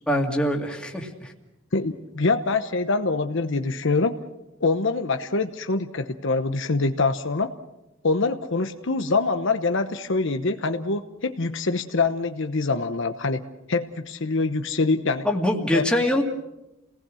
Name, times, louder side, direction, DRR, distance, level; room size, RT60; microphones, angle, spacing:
voice 1, 0.1-1.3 15.2-16.2, left 1 dB, 5° left, 1 dB, 2.3 m, -23 dB
voice 2, 1.7-4.1 4.6-7.5 8.0-13.4 13.7-15.3 15.7-15.8, left 3 dB, 65° left, 8 dB, 1.0 m, -24 dB
28.5 x 18.5 x 6.4 m, 0.94 s
head